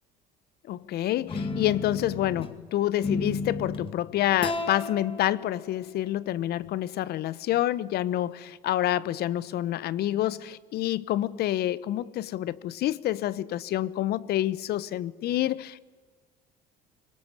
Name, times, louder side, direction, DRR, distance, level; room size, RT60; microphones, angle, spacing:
voice 1, 0.6-15.8, left 13 dB, 60° left, 1.0 m, -28 dB
sound 1, 1.3-2.5 3.0-3.9 4.4-6.7, left 3 dB, 30° left, 2.6 m, -33 dB
24.5 x 20.0 x 9.9 m
supercardioid pair, 85°, 19 cm